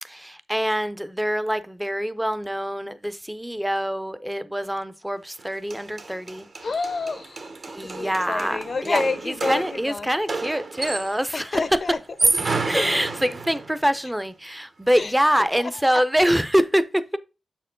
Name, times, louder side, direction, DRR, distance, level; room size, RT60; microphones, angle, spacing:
voice 1, 0.0-6.5 7.7-11.6 12.6-17.2, equal, 5° right, 0.5 m, -25 dB
sound 1, 5.4-5.5 5.7-11.3 12.0-13.8, right 3 dB, 50° right, 0.9 m, -29 dB
voice 2, 6.6-7.5 7.8-10.1 11.3-12.7 14.9-16.0, left 3 dB, 45° left, 0.5 m, -30 dB
7.0 x 4.5 x 3.7 m
wide cardioid pair, 120°, 0 cm